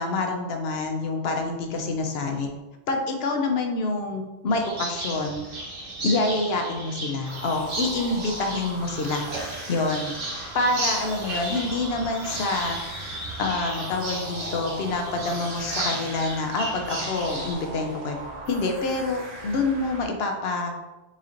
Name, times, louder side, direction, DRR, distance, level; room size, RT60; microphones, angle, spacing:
voice 1, 0.0-2.5 2.9-5.5 6.0-9.3 9.7-10.1 10.5-12.8 13.4-18.2 18.5-20.7, left 3 dB, 65° left, 4 dB, 0.8 m, -27 dB
sound 1, 4.5-17.5, right 1 dB, 55° right, 1.0 m, -34 dB
sound 2, 7.3-20.1, right 1 dB, 70° right, 1.2 m, -40 dB
4.2 x 4.1 x 2.5 m, 1.1 s
omnidirectional pair, 1.2 m